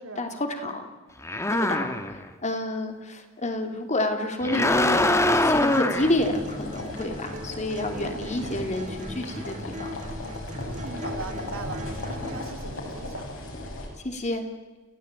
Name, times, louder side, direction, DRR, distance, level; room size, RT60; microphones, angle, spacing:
voice 1, 0.2-0.9 1.5-10.0 14.0-14.5, left 1 dB, 35° left, 5 dB, 3.1 m, -29 dB
sound 1, 1.2-2.3 4.4-6.1, left 1 dB, 15° left, 1.6 m, -23 dB
sound 2, 4.5-12.5, equal, 35° right, 3.5 m, -39 dB
sound 3, 5.9-13.9, left 1 dB, 65° left, 7.1 m, -37 dB
voice 2, 7.9-8.4 10.6-13.3, right 3 dB, 70° right, 5 dB, 3.2 m, -40 dB
29.5 x 16.5 x 9.1 m, 1.2 s
head